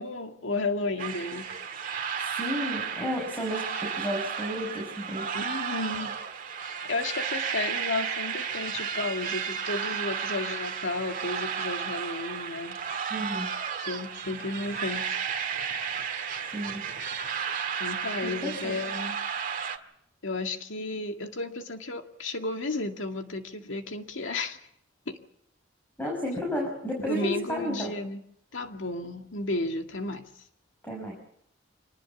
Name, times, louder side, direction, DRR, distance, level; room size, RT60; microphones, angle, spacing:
voice 1, 0.0-1.5 5.3-6.2 6.7-12.8 13.8-15.1 17.8-19.2 20.2-24.6 25.1-25.2 27.1-28.2 28.5-30.2, left 2 dB, 90° left, 5 dB, 2.1 m, -33 dB
sound 1, 1.0-19.8, right 7 dB, 45° right, 1.8 m, -33 dB
voice 2, 2.2-5.3 13.1-13.5 16.5-16.8 18.2-18.8 26.0-27.9 30.8-31.1, equal, 10° left, -1 dB, 6.3 m, -32 dB
25.5 x 19.5 x 7.2 m, 0.73 s
head